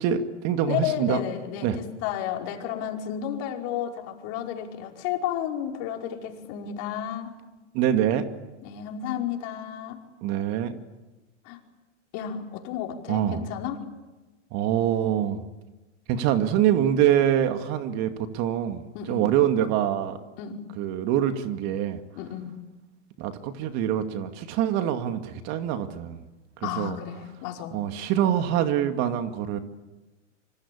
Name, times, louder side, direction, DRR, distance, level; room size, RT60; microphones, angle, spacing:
voice 1, 0.0-1.2 1.6-1.8 7.7-8.3 10.2-10.7 13.1-13.4 14.5-15.4 16.1-20.2 20.8-22.0 23.2-26.2 26.6-27.0 27.7-29.6, right 10 dB, 45° right, 8 dB, 2.3 m, -25 dB
voice 2, 0.7-7.3 8.6-10.0 11.4-11.6 12.1-13.8 18.9-19.4 20.4-20.6 22.1-22.6 26.6-27.8, left 10 dB, 50° left, 2 dB, 5.1 m, -32 dB
25.5 x 25.5 x 8.6 m, 1.1 s
hypercardioid pair, 115°, 37 cm